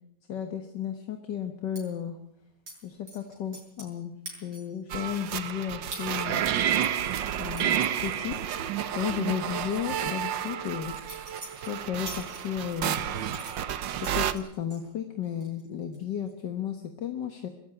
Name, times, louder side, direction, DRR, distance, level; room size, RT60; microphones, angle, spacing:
voice 1, 0.3-2.2 2.8-4.1 4.4-6.4 7.4-8.4 8.9-11.0 11.6-13.0 14.0-17.5, left 9 dB, 70° left, 7 dB, 2.0 m, -34 dB
sound 1, 1.8-1.9 2.7-2.8 3.1-4.0 4.3-4.8 5.2-5.3 5.9-6.1 6.4-8.8 9.0-9.2 9.6-12.8 13.3-14.8 15.2-15.7 15.9-16.3, right 1 dB, 60° right, 8.3 m, -45 dB
sound 2, 4.9-14.3, right 10 dB, 80° right, 1.7 m, -30 dB
22.0 x 14.0 x 9.8 m, 0.79 s
omnidirectional pair, 2.0 m